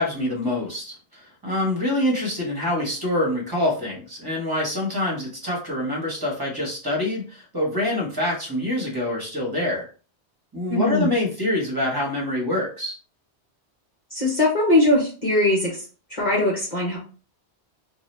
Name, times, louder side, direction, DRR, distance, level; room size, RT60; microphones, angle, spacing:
voice 1, 0.0-9.9 10.5-12.9, left 1 dB, 20° right, -2 dB, 1.1 m, -25 dB
voice 2, 10.7-11.1 14.1-15.8 16.1-17.0, left 1 dB, 45° left, -4 dB, 1.0 m, -21 dB
2.8 x 2.3 x 3.2 m, 0.37 s
omnidirectional pair, 1.1 m